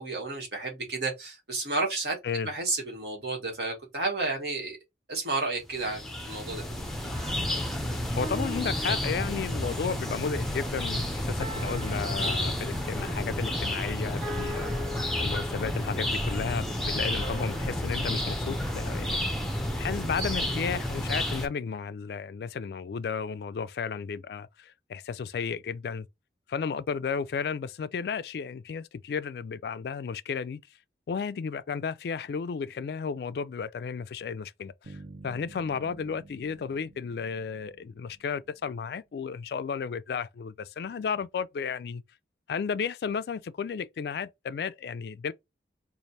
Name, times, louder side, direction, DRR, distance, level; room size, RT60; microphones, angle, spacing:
voice 1, 0.0-2.2 2.4-4.8 5.1-6.6, right 3 dB, 70° right, 1.5 m, -31 dB
sound 1, 5.7-21.5, left 1 dB, ahead, 0.5 m, -31 dB
voice 2, 8.2-14.7 15.2-19.3 19.8-26.1 26.5-30.6 31.1-35.0 35.2-42.0 42.5-45.3, left 6 dB, 60° left, 0.3 m, -33 dB
sound 2, 8.2-9.8 11.4-13.1 14.2-16.1 17.2-19.5, equal, 30° right, 1.5 m, -42 dB
sound 3, 34.8-38.8, right 2 dB, 50° right, 0.8 m, -50 dB
3.2 x 2.5 x 4.0 m
head